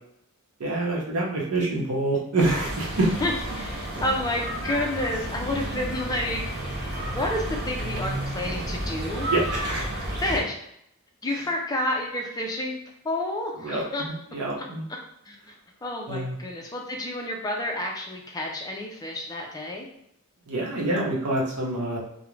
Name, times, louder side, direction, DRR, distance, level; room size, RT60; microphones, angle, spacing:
voice 1, 0.6-3.1 9.3-9.9 13.6-14.8 16.1-16.4 20.5-22.0, right 2 dB, 85° right, -2 dB, 0.7 m, -26 dB
sound 1, 2.4-10.4, right 1 dB, 45° right, 0.6 m, -31 dB
voice 2, 3.2-6.6 7.1-9.3 10.2-10.5 11.2-12.8 13.0-14.0 15.3-15.5 15.8-19.9, left 1 dB, 15° left, 1 dB, 0.3 m, -30 dB
2.4 x 2.0 x 3.0 m, 0.75 s
head